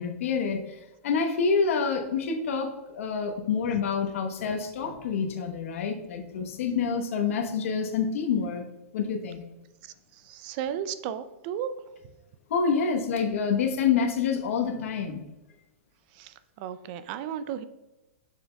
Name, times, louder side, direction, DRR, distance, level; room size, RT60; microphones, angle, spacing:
voice 1, 0.0-8.6 8.9-9.4 12.5-15.2, left 6 dB, 70° left, 5 dB, 1.0 m, -27 dB
voice 2, 9.8-11.7 16.1-17.6, right 9 dB, 40° right, 13 dB, 0.4 m, -35 dB
7.1 x 6.4 x 2.3 m, 1.0 s
hypercardioid pair, 150°, 8 cm